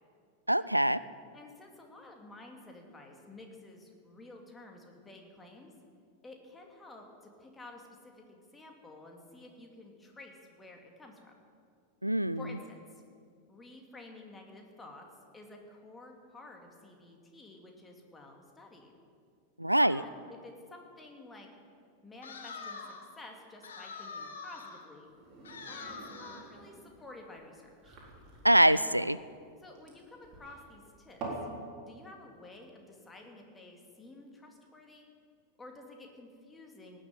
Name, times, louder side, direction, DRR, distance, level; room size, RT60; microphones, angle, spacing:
voice 1, 0.5-1.0 12.0-12.4 19.6-20.0 28.4-29.2, right 1 dB, 90° right, 17 dB, 0.3 m, -24 dB
voice 2, 1.3-5.7 6.2-11.3 12.4-13.0 13.5-15.1 15.3-18.9 19.8-21.5 22.0-25.1 25.7-28.0 29.6-31.2 31.8-35.1 35.6-37.0, left 2 dB, 15° left, 2 dB, 2.4 m, -51 dB
sound 1, 22.2-23.1 23.6-24.9 25.4-26.5, left 4 dB, 65° left, 1.8 m, -44 dB
sound 2, 25.0-31.5, right 3 dB, 35° right, 3.9 m, -46 dB
18.0 x 7.0 x 9.4 m, 2.2 s
figure-of-eight pair, 90°, 0 cm